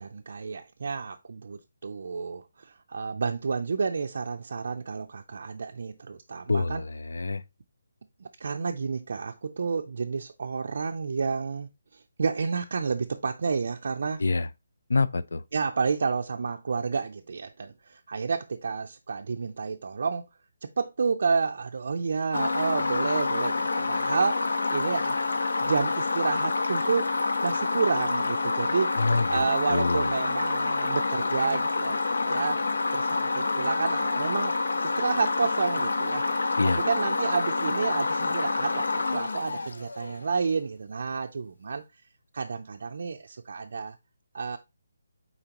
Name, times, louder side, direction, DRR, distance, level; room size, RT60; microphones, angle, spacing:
voice 1, 0.0-6.8 8.2-14.2 15.5-20.2 20.8-25.2 25.6-27.1 27.4-28.9 29.3-32.6 32.9-34.6 34.8-36.2 36.8-41.8 42.3-44.0 44.3-44.6, right 5 dB, 45° right, 0.5 m, -30 dB
voice 2, 6.5-7.4 14.2-14.5 14.9-15.4 29.0-30.1 36.6-36.8, left 3 dB, 70° left, 0.5 m, -26 dB
sound 1, 22.3-40.3, left 3 dB, 85° left, 1.1 m, -27 dB
8.8 x 3.9 x 2.9 m
hypercardioid pair, 180°, 0 cm